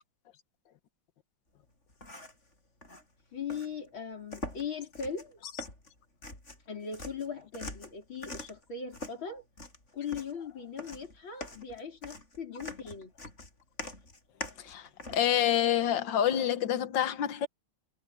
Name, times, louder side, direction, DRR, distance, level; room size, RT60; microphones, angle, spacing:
sound 1, 1.9-2.5 2.8-3.0 3.5-3.7 4.3-4.7 4.9-5.3 5.6-6.7 6.9-8.6 8.9-9.2 9.6-10.4 10.8-15.2, left 1 dB, 35° left, 7.9 m, -43 dB
voice 1, 3.3-5.4 6.7-9.4 9.9-13.1, left 6 dB, 85° left, 5.0 m, -39 dB
voice 2, 14.6-17.5, left 10 dB, 70° left, 1.7 m, -27 dB
omnidirectional pair, 2.1 m